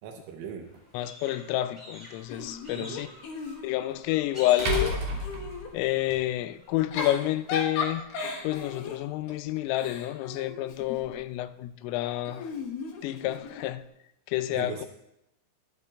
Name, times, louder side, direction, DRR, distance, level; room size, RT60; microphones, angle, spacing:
voice 1, 0.0-0.7 2.8-3.0 14.5-14.9, right 7 dB, 80° right, 3.6 m, -39 dB
sound 1, 0.6-7.7, left 1 dB, 10° left, 4.0 m, -50 dB
sound 2, 0.7-0.8 3.4-3.5 4.6-6.2, right 1 dB, 50° right, 4.1 m, -30 dB
voice 2, 0.9-3.1 3.6-5.0 5.7-8.1 8.4-12.5 13.0-13.8 14.3-14.9, left 15 dB, 85° left, 3.2 m, -29 dB
Giggle / Chuckle chortle, 2.3-3.9 4.3-5.7 6.7-11.2 12.3-13.7, left 4 dB, 65° left, 2.3 m, -36 dB
23.0 x 12.0 x 2.5 m
omnidirectional pair, 5.8 m